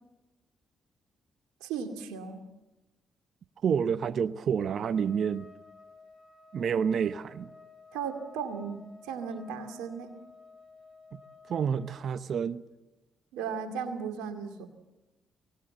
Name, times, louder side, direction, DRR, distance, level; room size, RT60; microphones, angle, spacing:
voice 1, 1.6-2.5 7.9-10.2 13.3-14.7, right 6 dB, 85° right, 2.3 m, -36 dB
voice 2, 3.6-5.5 6.5-7.5 11.5-12.7, right 7 dB, 65° right, 0.8 m, -29 dB
Trumpet, 4.8-12.1, left 4 dB, 40° left, 7.0 m, -54 dB
24.0 x 18.5 x 7.8 m
supercardioid pair, 50°, 0 cm